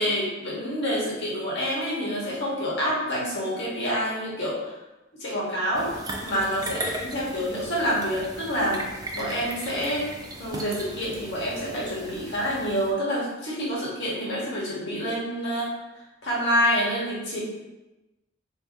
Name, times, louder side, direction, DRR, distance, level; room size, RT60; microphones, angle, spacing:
voice 1, 0.0-4.6 5.2-8.8 9.1-10.0 10.4-15.7 16.2-17.4, equal, 60° left, -7 dB, 1.3 m, -27 dB
sound 1, 5.7-12.9, right 1 dB, 20° right, 0.3 m, -37 dB
2.8 x 2.7 x 3.5 m, 1.1 s
head